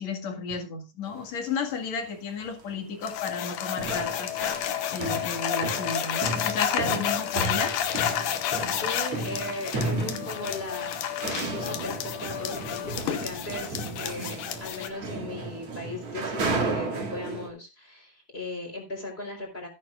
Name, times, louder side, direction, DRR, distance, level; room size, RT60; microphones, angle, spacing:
voice 1, 0.0-4.3 4.9-7.8, left 4 dB, 65° left, 5 dB, 3.1 m, -33 dB
sound 1, 1.0-1.2 2.0-2.1 2.4-2.8 3.1-17.5, right 3 dB, 55° right, 3.4 m, -34 dB
sound 2, 3.0-14.9, left 10 dB, 85° left, 2.6 m, -30 dB
voice 2, 8.4-11.0 11.3-19.7, left 2 dB, 20° left, 1 dB, 3.9 m, -38 dB
14.0 x 11.0 x 2.4 m, 0.30 s
omnidirectional pair, 3.5 m